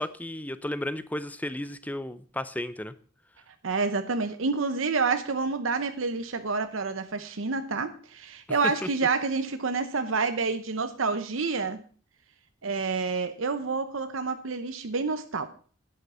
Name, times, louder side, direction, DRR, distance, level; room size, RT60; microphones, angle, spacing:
voice 1, 0.0-2.9 8.8-8.9, left 1 dB, 10° left, 14 dB, 0.6 m, -33 dB
voice 2, 3.6-11.8 12.6-15.5, right 4 dB, 70° right, 9 dB, 0.9 m, -28 dB
11.0 x 9.6 x 5.5 m, 0.41 s
head